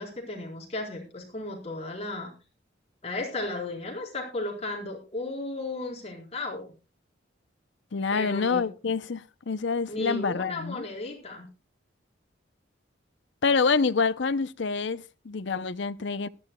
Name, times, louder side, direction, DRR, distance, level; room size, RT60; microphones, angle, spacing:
voice 1, 0.0-2.3 3.0-6.7 8.1-8.7 9.9-11.5, left 2 dB, 30° left, 4.3 m, -35 dB
voice 2, 7.9-10.9 13.4-16.3, left 4 dB, 65° left, 0.6 m, -27 dB
19.0 x 13.5 x 2.3 m
head